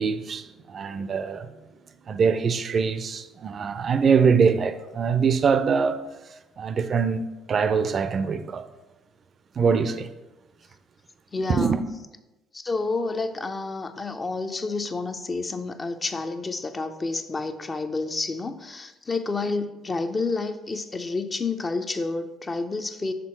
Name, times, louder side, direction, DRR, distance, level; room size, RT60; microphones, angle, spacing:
voice 1, 0.0-1.5 2.1-6.0 6.6-8.6 9.6-10.1 11.5-11.8, right 5 dB, 45° right, 0.5 m, -23 dB
voice 2, 11.3-11.8 12.5-23.1, left 3 dB, 30° left, 0.6 m, -29 dB
6.0 x 3.7 x 6.1 m
figure-of-eight pair, 50°, 0 cm